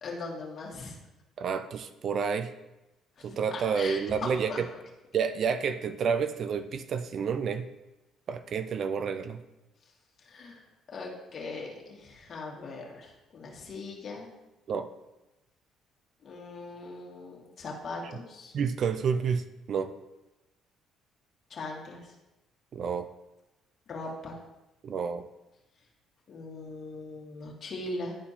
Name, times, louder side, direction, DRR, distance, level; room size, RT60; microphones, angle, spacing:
voice 1, 0.0-1.0 3.2-4.6 10.2-10.6 10.9-14.3 16.2-18.5 21.5-22.1 23.9-24.4 26.3-28.2, left 3 dB, 50° left, -2 dB, 1.9 m, -40 dB
voice 2, 1.4-2.5 3.2-4.7 5.1-7.7 8.3-9.4 14.7-14.9 18.5-19.9 22.7-23.1 24.8-25.2, right 6 dB, 55° right, 10 dB, 0.4 m, -29 dB
11.5 x 4.3 x 2.8 m, 0.99 s
supercardioid pair, 75°, 0 cm